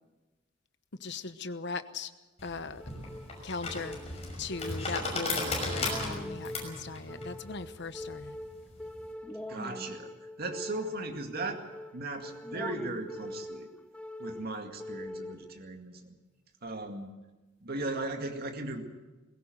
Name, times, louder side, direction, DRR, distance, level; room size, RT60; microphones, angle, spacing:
voice 1, 1.0-2.1 2.4-2.8 3.4-4.0 4.4-8.4, left 4 dB, 65° left, 1.1 m, -39 dB
sound 1, 2.4-9.1, left 2 dB, 35° left, 5.9 m, -36 dB
sound 2, 2.8-15.8, left 1 dB, 5° left, 0.6 m, -43 dB
voice 2, 9.5-10.1 10.4-11.6 11.9-13.7 14.2-16.1 16.6-17.1 17.6-18.8, right 2 dB, 55° right, 2.2 m, -37 dB
20.5 x 17.0 x 7.8 m
head